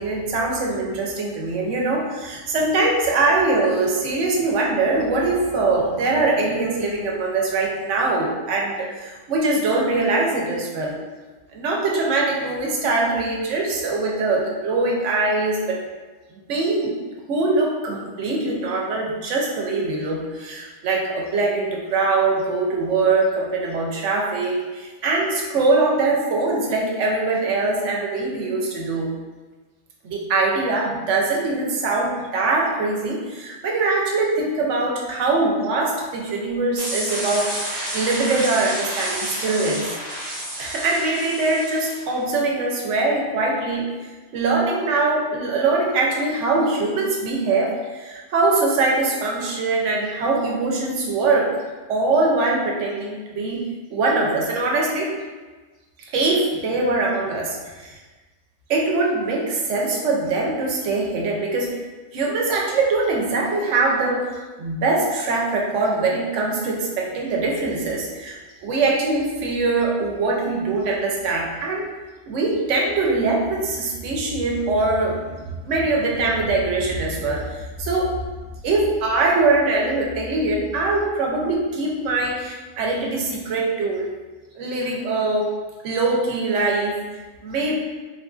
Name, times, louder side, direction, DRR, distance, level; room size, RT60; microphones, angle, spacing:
voice 1, 0.0-11.0 11.5-15.8 16.3-17.0 17.3-29.1 30.0-39.9 40.6-43.9 44.3-51.5 51.9-53.6 53.9-55.1 56.1-58.0 58.7-61.8 62.1-68.4 68.6-71.9 72.3-78.1 78.6-84.1 84.6-85.5 85.8-87.7, right 3 dB, 90° right, -2 dB, 1.0 m, -22 dB
sound 1, 36.8-42.2, right 1 dB, 25° right, 0.8 m, -30 dB
4.1 x 2.5 x 2.3 m, 1.3 s
omnidirectional pair, 1.2 m